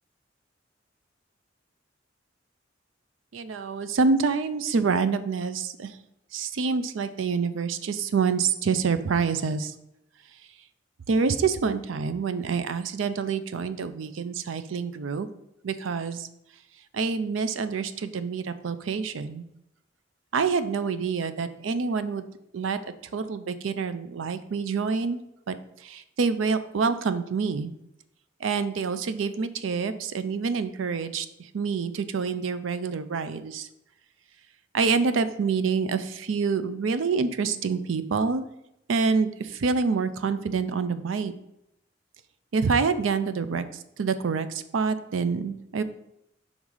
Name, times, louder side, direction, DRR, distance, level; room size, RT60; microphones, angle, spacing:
voice 1, 3.3-6.0 6.3-9.7 11.1-15.3 15.6-16.3 16.9-19.4 20.3-22.3 22.5-22.8 23.1-25.2 25.5-27.7 28.4-33.7 34.7-38.4 38.9-41.3 42.5-45.8, right 5 dB, 90° right, 12 dB, 0.4 m, -27 dB
5.4 x 3.6 x 4.8 m, 0.82 s
head